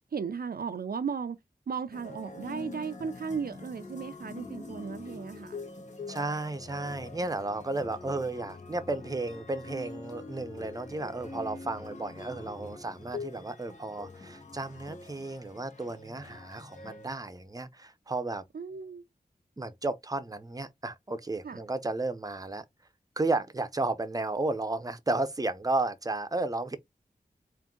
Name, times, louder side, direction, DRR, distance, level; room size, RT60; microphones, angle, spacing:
voice 1, 0.1-1.4 1.7-5.6 18.5-19.0 21.4-21.6, right 6 dB, 70° right, 0.4 m, -35 dB
sound 1, 1.9-17.1, left 3 dB, 50° left, 1.4 m, -44 dB
voice 2, 6.1-18.4 19.6-22.6 23.2-26.8, right 2 dB, 20° right, 0.7 m, -33 dB
3.6 x 2.6 x 3.7 m
wide cardioid pair, 60°, 16 cm